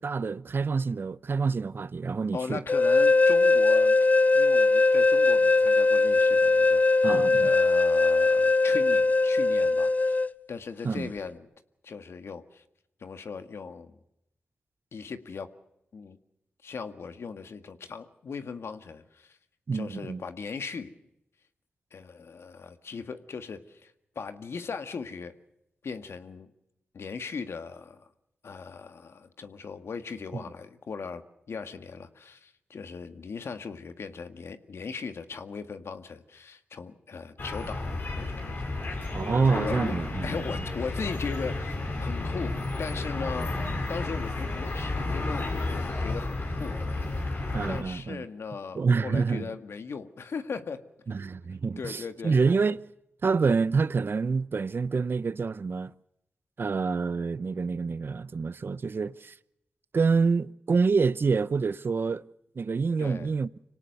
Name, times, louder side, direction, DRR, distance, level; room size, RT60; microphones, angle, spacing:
voice 1, 0.0-2.6 7.0-7.5 10.8-11.1 19.7-20.2 39.1-40.4 47.5-48.3 48.7-49.5 51.1-52.8 53.2-55.9 56.6-59.3 59.9-62.2 62.6-63.5, right 4 dB, 55° right, 0.7 m, -27 dB
voice 2, 2.3-4.0 4.3-10.2 10.5-11.5 11.8-12.6 13.0-14.0 14.9-15.5 15.9-16.2 16.6-19.4 19.7-20.9 21.9-25.3 25.8-26.5 26.9-28.1 28.4-38.9 39.5-39.9 40.2-43.5 43.9-46.8 47.7-50.8 51.8-52.4 63.0-63.3, left 5 dB, 75° left, 1.9 m, -38 dB
sound 1, 2.7-10.3, left 3 dB, 35° left, 0.8 m, -21 dB
sound 2, 37.4-47.8, left 2 dB, 55° left, 6.4 m, -32 dB
26.0 x 18.5 x 6.7 m
cardioid pair, 60°, 4 cm